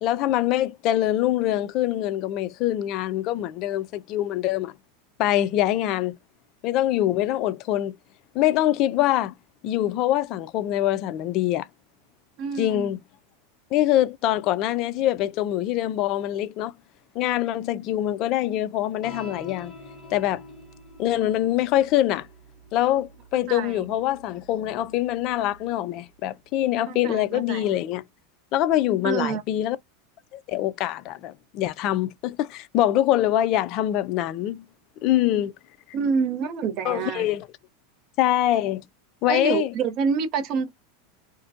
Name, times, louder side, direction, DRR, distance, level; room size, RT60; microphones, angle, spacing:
voice 1, 0.0-4.7 5.2-6.2 6.6-8.0 8.3-9.3 9.6-11.7 12.6-13.0 13.7-16.7 17.2-19.7 20.1-20.4 21.0-22.3 22.7-28.0 28.5-29.8 30.3-34.6 35.0-35.5 36.9-37.5 38.2-38.8 39.2-39.7, left 13 dB, 45° left, 0.3 m, -24 dB
voice 2, 12.4-13.0 23.5-23.9 26.9-27.8 29.0-29.4 35.9-37.3 39.3-40.7, right 6 dB, 40° right, 0.6 m, -27 dB
sound 1, 19.0-25.7, left 1 dB, 20° left, 0.9 m, -47 dB
2.5 x 2.1 x 2.5 m
supercardioid pair, 145°, 0 cm